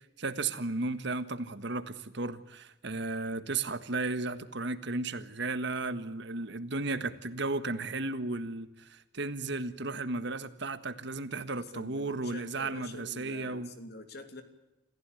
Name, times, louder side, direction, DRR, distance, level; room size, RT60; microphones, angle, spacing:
voice 1, 0.0-13.7, right 3 dB, 70° right, 12 dB, 1.6 m, -34 dB
voice 2, 6.7-7.1 11.7-14.4, left 2 dB, 60° left, 8 dB, 2.9 m, -47 dB
27.0 x 15.5 x 9.2 m, 0.97 s
head